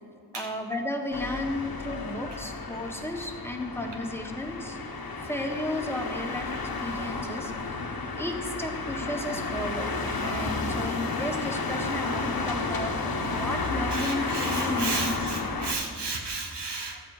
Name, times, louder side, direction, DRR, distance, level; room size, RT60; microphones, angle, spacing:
voice 1, 0.3-4.8 5.2-7.8 8.1-15.2, left 1 dB, 5° left, 3 dB, 1.5 m, -34 dB
sound 1, 1.1-15.7, left 3 dB, 60° left, 1.2 m, -32 dB
voice 2, 13.9-17.0, right 3 dB, 90° right, 2 dB, 1.4 m, -33 dB
13.0 x 8.9 x 5.0 m, 2.4 s
wide cardioid pair, 50°, 40 cm